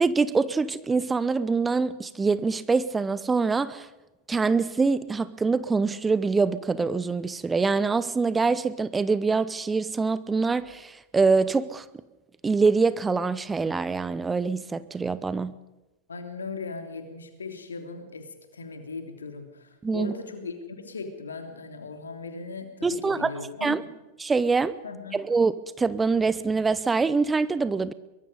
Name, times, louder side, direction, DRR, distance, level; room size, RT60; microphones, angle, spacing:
voice 1, 0.0-3.9 4.3-11.8 12.4-15.5 19.8-20.1 22.8-23.3 23.6-23.8 24.2-24.8 25.1-27.9, right 4 dB, 15° right, 0.8 m, -24 dB
voice 2, 16.1-23.9 24.8-25.2, left 4 dB, 70° left, 3.2 m, -38 dB
23.5 x 22.0 x 5.3 m
figure-of-eight pair, 90°, 0 cm